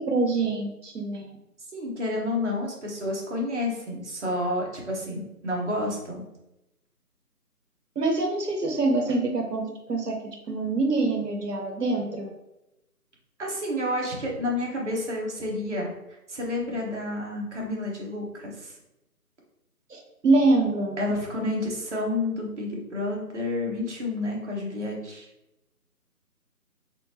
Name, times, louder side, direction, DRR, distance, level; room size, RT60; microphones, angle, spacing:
voice 1, 0.1-1.3 8.0-12.3 19.9-21.0, right 3 dB, 85° right, 2 dB, 0.9 m, -25 dB
voice 2, 1.7-6.2 13.4-18.7 21.0-25.3, left 1 dB, 50° right, -2 dB, 1.2 m, -30 dB
4.3 x 3.4 x 2.8 m, 0.92 s
figure-of-eight pair, 160°, 46 cm